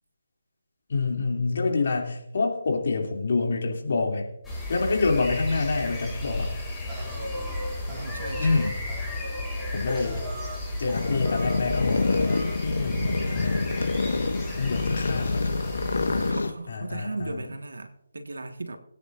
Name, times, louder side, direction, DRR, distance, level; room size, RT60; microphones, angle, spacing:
voice 1, 0.9-4.3 4.7-6.5 8.4-8.7 9.7-10.2 10.8-13.7 14.6-15.6 16.7-17.4, left 3 dB, 60° left, 1 dB, 2.8 m, -27 dB
sound 1, 4.4-16.3, left 1 dB, 10° left, 2.5 m, -33 dB
sound 2, 6.9-10.6 10.9-11.6 11.9-12.6, right 1 dB, 10° right, 3.5 m, -39 dB
voice 2, 7.9-8.7 16.0-18.8, right 2 dB, 80° right, 6 dB, 1.7 m, -37 dB
sound 3, 10.9-16.5, left 3 dB, 75° left, 1.5 m, -27 dB
22.0 x 9.4 x 2.6 m, 0.79 s
figure-of-eight pair, 155°, 0 cm